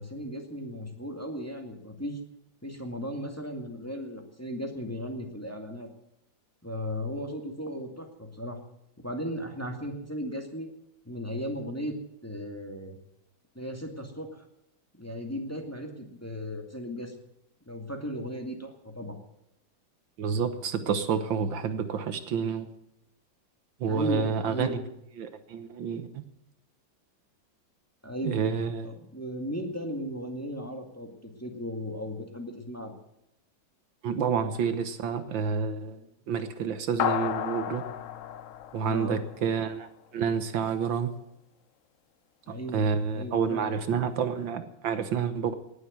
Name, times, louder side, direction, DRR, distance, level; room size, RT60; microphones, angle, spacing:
voice 1, 0.0-2.2 2.6-5.9 6.6-8.6 9.0-10.7 11.1-12.0 12.2-13.0 13.5-14.4 15.0-17.1 17.7-19.2 23.8-24.9 28.0-28.5 28.8-33.0 38.8-39.2 42.5-43.7, equal, 10° left, 3 dB, 2.1 m, -36 dB
voice 2, 20.2-22.7 23.8-24.8 25.2-26.2 28.3-28.9 34.0-36.0 36.3-37.8 38.7-41.1 42.7-45.5, right 6 dB, 75° right, 10 dB, 1.8 m, -29 dB
sound 1, 37.0-39.7, left 10 dB, 60° left, 0.8 m, -32 dB
19.0 x 7.9 x 9.4 m, 0.81 s
omnidirectional pair, 2.1 m